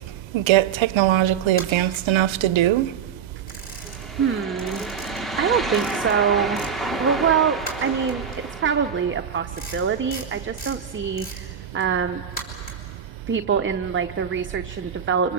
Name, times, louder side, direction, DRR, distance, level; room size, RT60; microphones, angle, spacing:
voice 1, 0.3-2.9, right 14 dB, 80° right, 0.6 m, -20 dB
sound 1, 1.5-2.8 3.1-4.3 4.5-6.8 7.1-13.0, right 1 dB, 20° left, 4.3 m, -39 dB
sound 2, 3.7-9.2, right 1 dB, ahead, 1.1 m, -31 dB
voice 2, 4.2-4.9 5.4-6.6 7.0-8.3 8.6-12.2 13.3-15.3, right 7 dB, 25° right, 0.6 m, -24 dB
25.5 x 24.5 x 7.6 m
cardioid pair, 110°, 46 cm